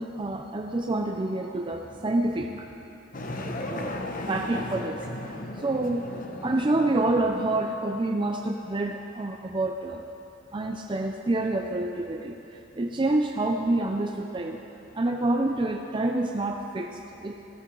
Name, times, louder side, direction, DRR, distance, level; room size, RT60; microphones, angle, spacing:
voice 1, 0.0-2.7 3.7-3.9 4.3-5.0 5.3-6.0 6.4-10.0 10.5-14.6 14.9-17.4, right 2 dB, 25° right, 3 dB, 0.5 m, -27 dB
sound 1, 3.1-8.1, left 1 dB, 45° left, 1.0 m, -36 dB
16.5 x 14.5 x 3.8 m, 3.0 s
head